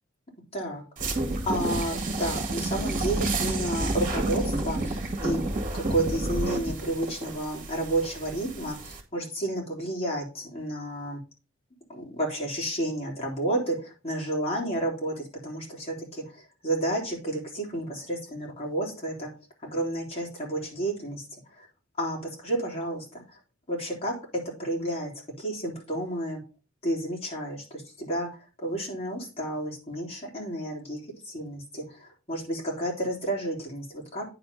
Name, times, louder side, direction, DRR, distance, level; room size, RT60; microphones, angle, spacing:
voice 1, 0.5-5.4 5.7-11.2 11.9-19.3 19.6-21.2 21.6-21.7 22.0-23.4 23.7-24.1 24.6-25.1 25.4-26.4 26.8-28.3 28.6-31.0 31.3-34.3, right 1 dB, 30° left, -2 dB, 3.5 m, -31 dB
sound 1, 1.0-9.0, right 2 dB, 40° right, 2.0 m, -30 dB
9.8 x 4.3 x 5.4 m, 0.34 s
head